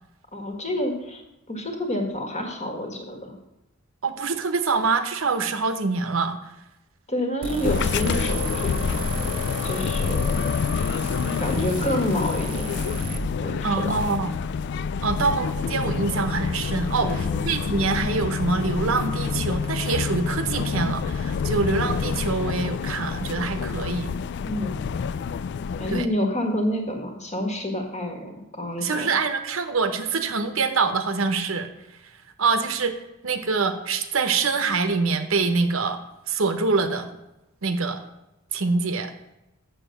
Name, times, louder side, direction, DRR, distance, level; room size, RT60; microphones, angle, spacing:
voice 1, 0.3-1.2 1.5-3.3 7.1-8.7 9.6-10.5 11.4-12.7 13.4-14.0 17.0-17.4 24.4-24.8 25.8-29.1, left 1 dB, 35° left, 3 dB, 1.6 m, -28 dB
voice 2, 4.0-6.5 13.6-14.3 15.0-24.1 25.9-26.1 28.8-31.7 32.4-33.0 33.2-36.0 36.3-37.1 37.6-38.0 38.5-39.1, right 4 dB, 75° right, 8 dB, 0.8 m, -25 dB
sound 1, 7.4-13.2, right 3 dB, 30° right, 1.1 m, -34 dB
sound 2, 7.6-26.1, left 6 dB, 55° left, 0.3 m, -27 dB
7.1 x 6.9 x 6.5 m, 0.94 s
head